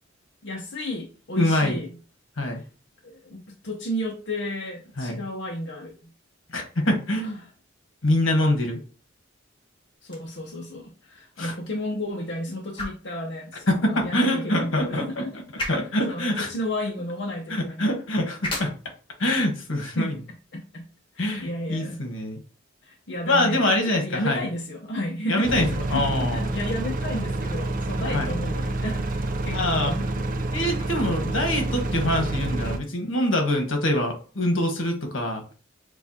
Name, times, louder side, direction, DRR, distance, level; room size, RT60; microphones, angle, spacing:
voice 1, 0.4-2.0 2.5-2.6 3.0-6.1 7.1-7.3 10.0-15.3 16.1-17.9 19.9-20.1 20.5-20.9 21.1-22.0 22.8-29.1 29.4-30.2, left 1 dB, 60° left, -1 dB, 0.8 m, -32 dB
voice 2, 1.4-1.8 2.4-2.6 5.0-5.2 6.5-7.4 8.0-8.8 11.4-11.5 13.7-15.2 15.7-16.5 17.5-18.7 19.2-20.2 21.2-22.4 23.3-24.4 25.3-26.5 28.1-28.3 29.5-29.9 30.5-35.4, left 1 dB, 80° left, 3 dB, 1.3 m, -24 dB
sound 1, 10.0-22.0, left 1 dB, 25° left, 1.1 m, -41 dB
sound 2, 25.4-32.8, right 2 dB, 40° right, 0.4 m, -28 dB
6.9 x 2.4 x 2.8 m, 0.37 s
head